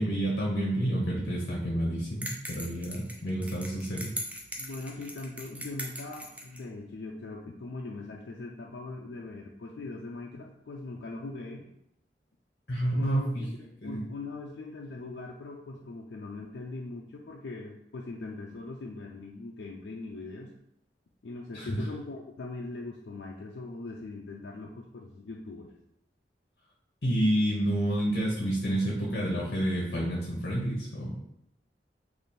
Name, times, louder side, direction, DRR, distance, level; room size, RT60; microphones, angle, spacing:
voice 1, 0.0-4.1 12.7-13.4 13.8-14.0 21.5-21.8 27.0-31.1, right 1 dB, 60° left, -3 dB, 0.8 m, -29 dB
sound 1, 2.2-6.6, equal, 10° right, 0.4 m, -40 dB
voice 2, 4.6-11.7 12.9-20.5 21.2-25.7, left 2 dB, 80° left, -1 dB, 0.4 m, -41 dB
3.3 x 2.5 x 4.1 m, 0.78 s
head